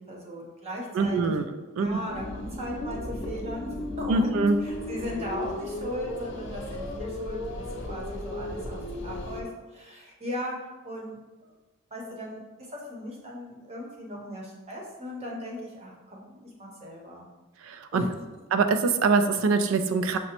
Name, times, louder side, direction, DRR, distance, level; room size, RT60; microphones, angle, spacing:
voice 1, 0.0-10.6 10.8-11.5 11.9-17.3 17.9-18.1, equal, 30° right, -2 dB, 0.7 m, -38 dB
voice 2, 0.9-2.0 4.1-4.6 17.6-18.0 18.5-20.2, right 4 dB, 75° right, 9 dB, 0.3 m, -24 dB
sound 1, 1.8-9.4, left 2 dB, 60° left, 0.5 m, -35 dB
5.8 x 2.0 x 2.8 m, 1.1 s
head